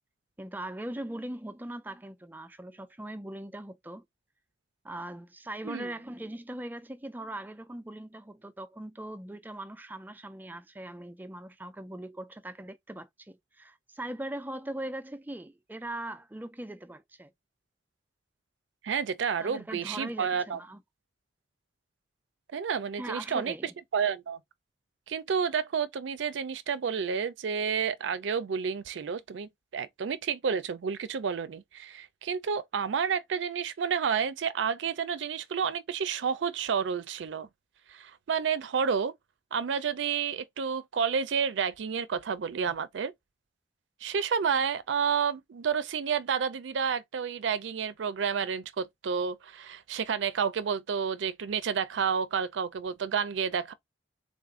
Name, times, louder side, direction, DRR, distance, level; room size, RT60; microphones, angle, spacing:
voice 1, 0.4-4.0 4.8-17.3 19.4-20.8 23.0-23.8, right 1 dB, 10° right, 0.4 m, -40 dB
voice 2, 18.8-20.6 22.5-24.4 25.1-37.5 37.9-39.1 39.5-43.1 44.0-53.7, right 6 dB, 85° right, 0.4 m, -30 dB
3.7 x 2.5 x 3.6 m
head